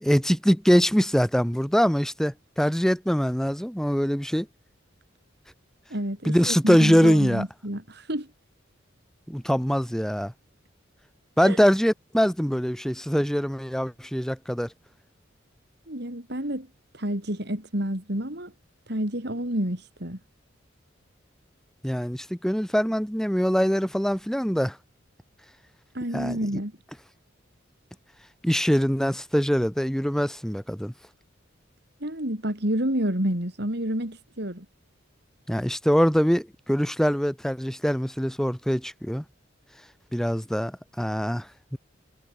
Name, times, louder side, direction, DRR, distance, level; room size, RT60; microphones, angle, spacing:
voice 1, 0.0-4.5 6.2-7.4 9.3-10.3 11.4-14.7 21.8-24.8 26.1-26.4 28.4-30.9 35.5-39.2 40.1-41.5 41.7-41.8, equal, 5° left, 1.3 m, -23 dB
voice 2, 5.9-8.3 11.4-11.6 15.9-16.7 16.9-18.5 18.9-20.2 25.9-26.7 32.0-34.6, right 1 dB, 55° right, 5.0 m, -29 dB
head